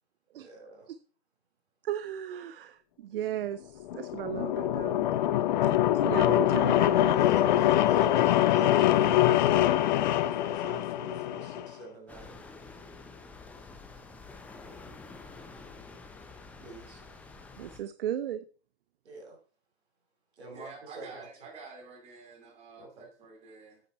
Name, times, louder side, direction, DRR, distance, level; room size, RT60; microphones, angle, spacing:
voice 1, 0.4-0.9 7.1-9.7 10.3-12.4 13.9-14.0 14.6-15.0 16.6-17.0 19.0-19.4 20.3-21.3 22.8-23.1, right 2 dB, 90° right, 0 dB, 5.7 m, -47 dB
voice 2, 1.8-5.0 6.0-7.0 17.6-18.4, right 11 dB, 60° right, 13 dB, 0.7 m, -35 dB
sound 1, 3.8-11.7, left 12 dB, 45° left, 0.6 m, -24 dB
sound 2, 12.1-17.8, left 3 dB, 5° left, 0.7 m, -48 dB
voice 3, 20.5-23.8, right 4 dB, 20° right, 3 dB, 2.6 m, -49 dB
9.0 x 8.5 x 4.4 m, 0.40 s
hypercardioid pair, 155°, 32 cm